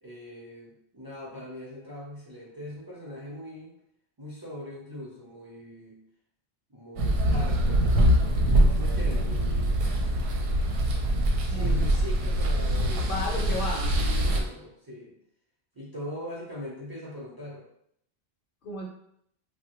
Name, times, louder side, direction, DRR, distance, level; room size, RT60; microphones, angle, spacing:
voice 1, 0.0-3.7 4.2-6.0 6.7-10.2 11.5-13.5 13.9-15.1 15.7-17.7, left 1 dB, 25° right, -5 dB, 0.5 m, -41 dB
sound 1, 7.0-14.4, equal, 65° right, 0.7 m, -24 dB
voice 2, 11.5-11.8 13.0-13.9 18.6-18.9, left 2 dB, 60° left, -1 dB, 0.7 m, -33 dB
3.1 x 2.1 x 2.9 m, 0.71 s
omnidirectional pair, 1.1 m